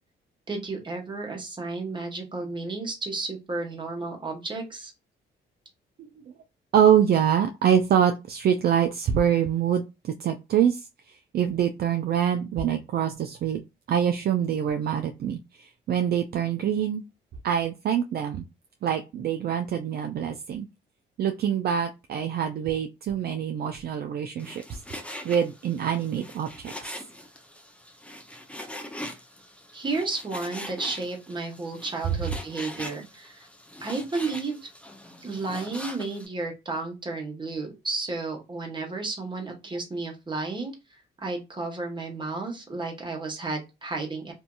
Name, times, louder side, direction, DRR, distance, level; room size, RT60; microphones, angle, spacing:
voice 1, 0.5-4.9 29.7-33.5 33.8-34.6 35.2-44.3, right 3 dB, 25° right, 1 dB, 1.2 m, -32 dB
voice 2, 6.7-10.9 11.3-13.6 13.9-17.0 17.4-18.5 18.8-20.7 21.2-26.7, right 9 dB, 50° right, 6 dB, 0.4 m, -25 dB
Frying (food), 24.4-36.3, left 1 dB, 5° left, 0.5 m, -42 dB
2.8 x 2.6 x 2.3 m, 0.25 s
cardioid pair, 90°, 20 cm